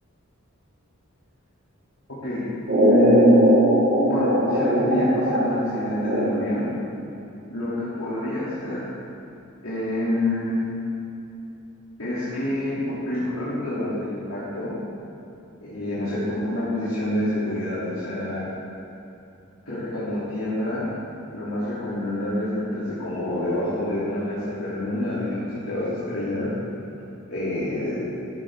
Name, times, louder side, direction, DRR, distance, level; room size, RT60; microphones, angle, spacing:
sound 1, 2.7-6.7, right 1 dB, 60° right, 2.1 m, -20 dB
voice 1, 2.8-3.4 3.8-6.7 7.5-8.8 9.6-10.5 12.0-14.7 15.6-18.5 19.7-20.9 21.3-26.5 27.3-28.0, left 1 dB, 85° left, -12 dB, 3.0 m, -27 dB
13.5 x 11.0 x 3.7 m, 2.7 s
head